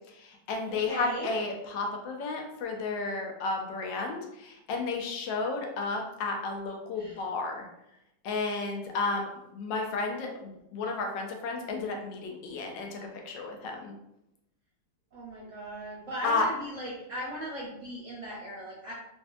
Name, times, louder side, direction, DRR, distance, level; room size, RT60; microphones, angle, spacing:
voice 1, 0.2-7.7 8.2-13.0 13.2-13.9 16.2-16.5, left 3 dB, 80° left, 2 dB, 1.2 m, -32 dB
voice 2, 0.7-1.4 6.9-7.2 15.1-18.9, equal, 55° right, -6 dB, 0.9 m, -38 dB
3.2 x 2.6 x 2.3 m, 0.84 s
omnidirectional pair, 2.0 m